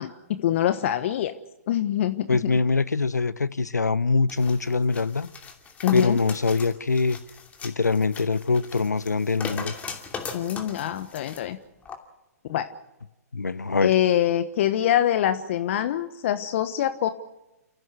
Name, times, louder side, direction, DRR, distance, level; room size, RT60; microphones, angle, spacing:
voice 1, 0.0-1.3 1.7-2.5 5.8-6.2 10.3-11.6 12.5-12.7 13.8-17.1, left 11 dB, 50° left, 1.2 m, -24 dB
voice 2, 2.3-5.3 5.9-7.2 7.6-9.7 13.3-13.9, left 4 dB, 85° left, 0.8 m, -23 dB
sound 1, 4.3-11.4 11.9-12.0, left 5 dB, 15° left, 2.7 m, -39 dB
29.5 x 15.5 x 8.1 m
figure-of-eight pair, 120°, 9 cm